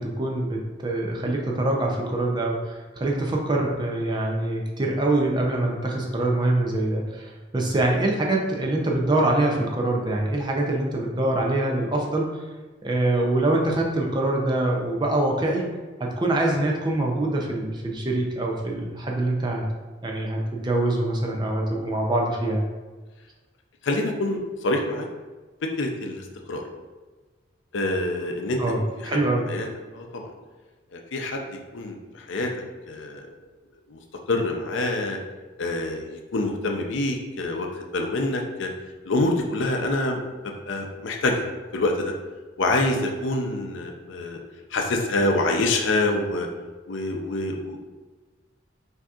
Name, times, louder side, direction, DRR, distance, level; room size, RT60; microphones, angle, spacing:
voice 1, 0.0-12.3 12.8-15.7 16.0-19.7 20.0-22.6 28.6-29.5, right 2 dB, 20° right, -1 dB, 0.5 m, -24 dB
voice 2, 23.8-25.1 25.8-26.6 27.7-28.6 29.0-29.2 29.5-29.7 29.9-30.3 30.9-32.5 32.9-33.3 33.9-34.0 34.3-35.2 35.6-38.7 39.0-40.2 40.6-41.4 41.7-42.1 42.6-44.4 44.7-46.5 46.9-47.8, left 2 dB, 70° left, 2 dB, 0.5 m, -26 dB
6.0 x 2.7 x 2.4 m, 1.3 s
head